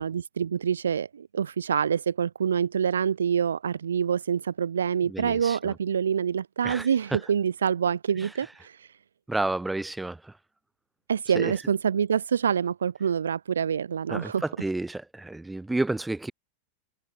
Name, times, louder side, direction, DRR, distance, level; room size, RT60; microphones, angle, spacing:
voice 1, 0.0-8.9 11.1-14.4, right 7 dB, 70° right, 0.6 m, -26 dB
voice 2, 5.1-5.7 6.6-7.2 8.2-8.3 9.3-10.3 11.3-11.5 14.1-16.3, right 2 dB, 5° right, 4.5 m, -31 dB
figure-of-eight pair, 90°, 0 cm